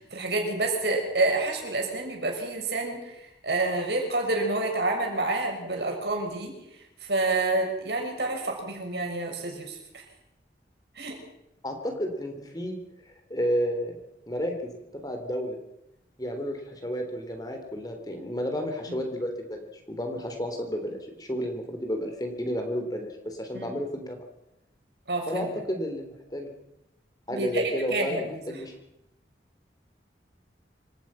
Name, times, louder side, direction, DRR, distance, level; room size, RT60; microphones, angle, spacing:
voice 1, 0.0-3.2 3.4-6.5 7.0-9.8 11.0-11.2 18.9-19.0 23.5-23.8 25.1-25.5 27.3-27.6 27.9-28.2, right 2 dB, 70° right, 2 dB, 6.5 m, -28 dB
voice 2, 11.6-14.0 14.3-15.6 16.2-24.2 25.3-26.5 27.3-28.7, equal, 20° left, 4 dB, 3.7 m, -32 dB
27.0 x 17.0 x 6.0 m, 0.84 s
head